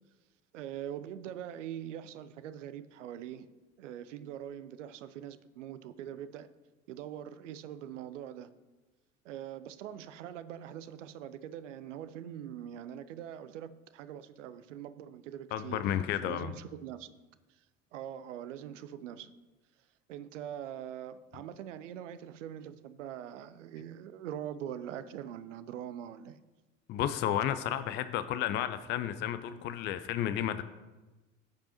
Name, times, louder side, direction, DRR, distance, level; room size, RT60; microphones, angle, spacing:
voice 1, 0.5-3.5 3.8-6.5 6.9-8.5 9.2-15.8 16.2-17.1 17.9-19.3 20.1-26.4, right 10 dB, 70° right, 0.6 m, -43 dB
voice 2, 15.5-16.5 26.9-30.6, left 11 dB, 30° left, 0.4 m, -32 dB
14.5 x 5.1 x 3.0 m
figure-of-eight pair, 65°, 39 cm